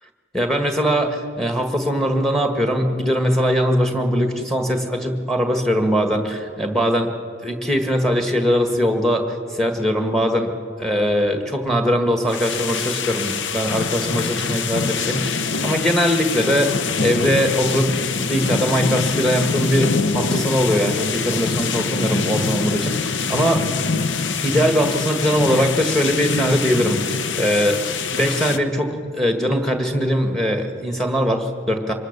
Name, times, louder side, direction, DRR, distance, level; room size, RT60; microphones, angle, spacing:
voice 1, 0.3-7.1 7.4-10.5 10.8-23.7 24.4-27.8 28.1-31.9, equal, ahead, 5 dB, 1.6 m, -21 dB
sound 1, 12.3-28.6, left 5 dB, 90° left, 0.8 m, -24 dB
24.5 x 21.0 x 6.7 m, 2.6 s
head